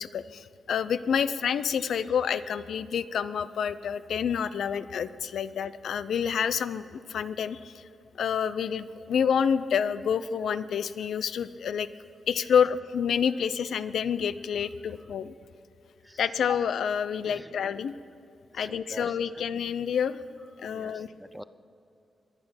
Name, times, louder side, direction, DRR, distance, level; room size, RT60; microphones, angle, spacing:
voice 1, 0.0-7.8 8.2-11.9 12.3-15.3 16.2-17.9 18.5-20.2 20.6-21.1, left 7 dB, 80° left, 14 dB, 0.5 m, -28 dB
voice 2, 16.0-16.4 17.2-17.6 18.5-19.7 20.4-21.4, equal, ahead, 13 dB, 0.5 m, -47 dB
23.5 x 8.9 x 5.7 m, 2.7 s
cardioid pair, 105°, 0 cm